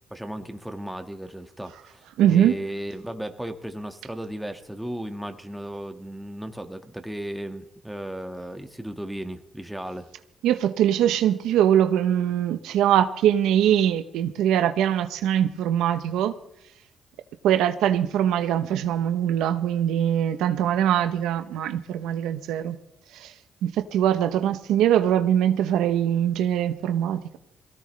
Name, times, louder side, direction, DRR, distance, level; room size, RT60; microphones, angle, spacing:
voice 1, 0.1-10.1, right 1 dB, 5° right, 6 dB, 1.7 m, -35 dB
voice 2, 2.2-2.5 10.4-16.3 17.4-22.8 23.1-23.3 23.6-27.4, right 10 dB, 90° right, 10 dB, 0.8 m, -22 dB
21.5 x 16.5 x 3.3 m, 0.78 s
cardioid pair, 75°, 0 cm